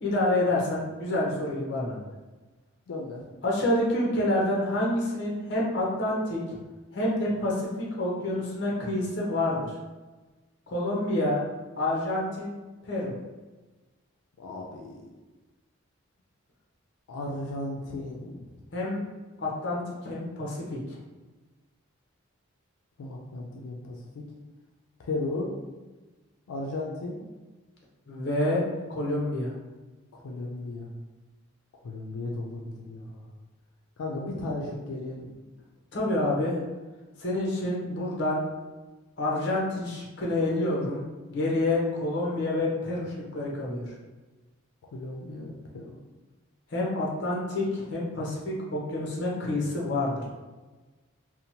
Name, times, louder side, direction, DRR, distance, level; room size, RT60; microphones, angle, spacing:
voice 1, 0.0-2.1 3.4-6.4 6.9-9.7 10.7-11.4 11.8-12.5 12.8-13.1 18.7-19.0 19.4-20.6 28.1-28.6 29.0-29.5 35.9-36.6 37.2-38.4 39.2-41.0 41.3-43.9 46.7-50.3, left 1 dB, 50° left, -4 dB, 0.7 m, -28 dB
voice 2, 2.9-3.2 14.4-15.0 17.1-18.4 23.0-24.2 25.0-25.5 26.5-27.2 30.1-30.9 31.8-33.3 34.0-35.3 44.9-46.0, left 2 dB, 85° left, -1 dB, 0.4 m, -35 dB
2.8 x 2.1 x 2.7 m, 1.2 s
head